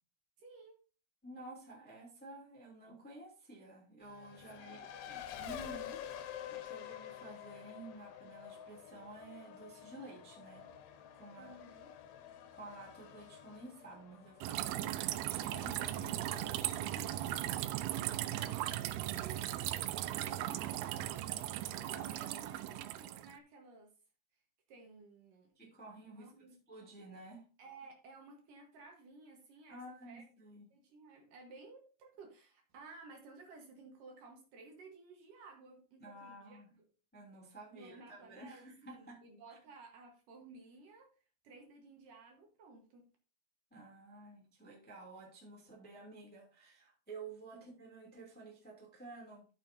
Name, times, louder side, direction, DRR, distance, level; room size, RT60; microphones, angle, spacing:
voice 1, 0.4-0.8 4.6-5.2 11.4-11.9 18.3-23.9 24.7-25.5 26.2-26.6 27.6-30.2 30.7-36.8 37.7-38.7 39.0-41.1 41.4-43.0 47.5-47.6, right 3 dB, 65° right, 2 dB, 2.7 m, -55 dB
voice 2, 1.2-4.8 5.4-10.7 11.1-11.5 12.5-17.0 17.3-17.4 18.2-18.4 25.5-26.3 26.7-27.4 29.7-30.6 36.0-36.7 37.1-39.2 39.5-39.6 43.7-49.4, right 2 dB, 5° left, -2 dB, 1.6 m, -52 dB
Race car auto racing, 4.0-23.1, left 10 dB, 75° left, 2.7 m, -51 dB
sound 1, 14.4-23.3, right 14 dB, 85° right, 2.5 m, -38 dB
13.0 x 6.8 x 2.7 m, 0.36 s
omnidirectional pair, 4.5 m